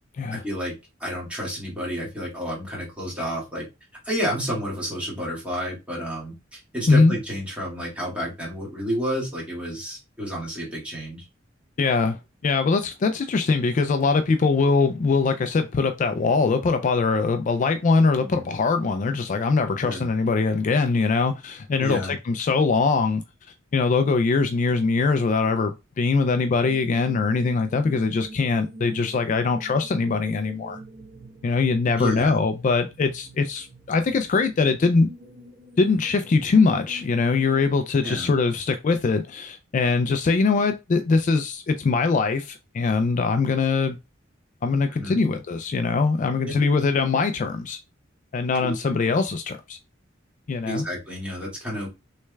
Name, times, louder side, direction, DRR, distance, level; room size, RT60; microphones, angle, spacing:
voice 1, 0.3-0.7 1.0-3.6 4.0-11.3 18.2-18.4 19.9-20.1 21.8-22.1 32.0-32.4 38.0-38.3 44.9-45.2 46.4-46.5 48.6-48.7 50.6-51.9, equal, 5° right, 2.0 m, -30 dB
voice 2, 11.8-23.2 23.7-30.8 31.4-35.1 35.8-44.0 44.6-47.8 48.3-49.8 50.5-50.8, left 4 dB, 40° left, 0.3 m, -22 dB
sound 1, 26.4-37.7, right 1 dB, 55° right, 1.0 m, -45 dB
6.3 x 3.2 x 2.2 m
head